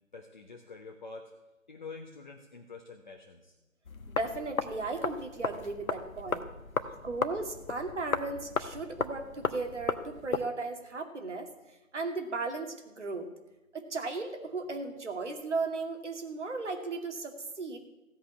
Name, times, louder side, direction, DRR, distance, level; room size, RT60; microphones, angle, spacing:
voice 1, 0.1-1.3 1.7-3.5 6.2-6.3 6.6-7.1, left 4 dB, 35° left, 2 dB, 1.1 m, -47 dB
sound 1, 3.9-10.5, left 4 dB, 80° left, 1.2 m, -35 dB
voice 2, 4.1-6.5 7.0-11.5 11.9-13.3 13.7-17.8, right 3 dB, 55° right, 4 dB, 2.4 m, -36 dB
15.5 x 5.5 x 9.5 m, 1.0 s
figure-of-eight pair, 160°, 41 cm